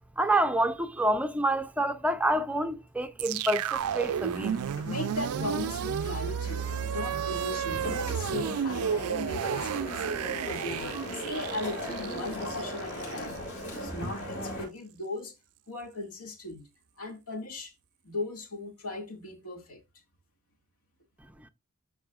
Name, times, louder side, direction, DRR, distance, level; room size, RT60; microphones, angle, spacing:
voice 1, 0.2-4.6, right 1 dB, 5° right, 0.4 m, -27 dB
sound 1, 3.2-13.4, right 8 dB, 90° right, 0.4 m, -32 dB
sound 2, 3.7-14.6, equal, 50° left, 5.7 m, -39 dB
voice 2, 4.8-10.1 10.5-15.3 15.7-16.7 17.0-17.7 18.0-19.8, left 2 dB, 80° left, 2.0 m, -38 dB
13.0 x 4.8 x 2.3 m
head